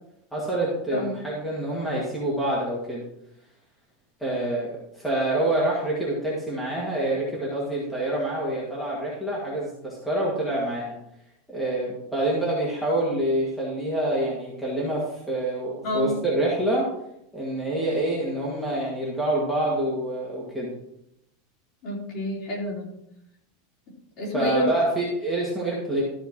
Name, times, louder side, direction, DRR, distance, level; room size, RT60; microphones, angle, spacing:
voice 1, 0.3-3.0 4.2-11.0 11.5-16.9 17.3-20.7 24.3-26.0, right 1 dB, 5° left, -6 dB, 1.7 m, -26 dB
voice 2, 15.8-16.1 21.8-22.9 24.2-24.7, equal, 35° left, -3 dB, 3.5 m, -28 dB
13.0 x 4.6 x 6.1 m, 0.79 s
supercardioid pair, 180°, 0 cm